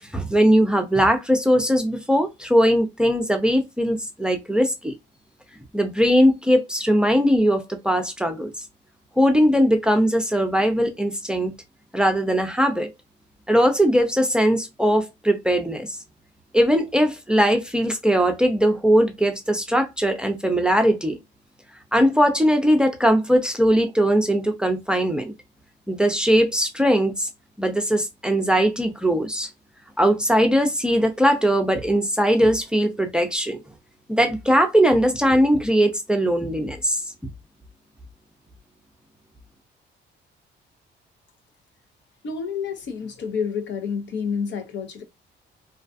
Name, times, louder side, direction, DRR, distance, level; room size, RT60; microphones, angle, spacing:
voice 1, 0.1-4.9 5.7-8.5 9.2-11.5 11.9-12.9 13.5-16.0 16.5-21.2 21.9-25.3 25.9-27.3 27.6-29.5 30.0-33.6 34.1-37.0, equal, 5° right, 0.5 m, -20 dB
voice 2, 42.2-45.0, left 6 dB, 65° left, 0.7 m, -29 dB
2.3 x 2.3 x 2.5 m
cardioid pair, 90°, 20 cm